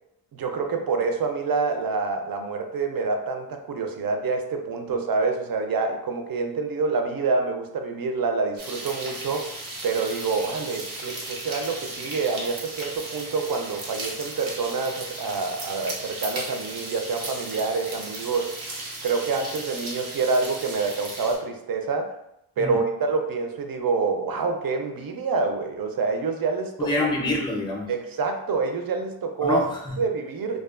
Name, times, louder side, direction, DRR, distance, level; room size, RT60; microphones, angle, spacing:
voice 1, 0.3-9.5 9.8-18.5 19.0-22.1 22.6-27.1 27.9-29.6 30.0-30.6, right 4 dB, 50° right, 5 dB, 0.5 m, -27 dB
sound 1, 8.6-21.4, right 2 dB, 80° right, 0.8 m, -36 dB
voice 2, 26.8-27.9 29.4-30.0, left 2 dB, 10° left, -1 dB, 0.5 m, -27 dB
2.4 x 2.3 x 2.3 m, 0.81 s
cardioid pair, 45°, 47 cm